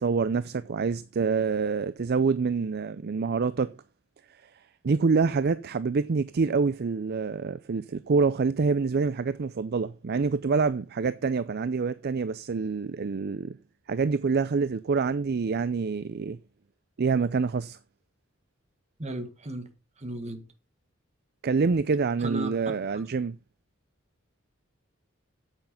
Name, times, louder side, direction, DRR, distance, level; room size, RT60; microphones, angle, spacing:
voice 1, 0.0-3.7 4.8-13.6 13.9-16.4 17.0-17.8 21.4-23.4, right 4 dB, 50° right, 0.5 m, -26 dB
voice 2, 19.0-19.7 20.0-20.4 22.2-22.6, right 1 dB, 35° right, 1.8 m, -35 dB
8.9 x 8.2 x 5.7 m
head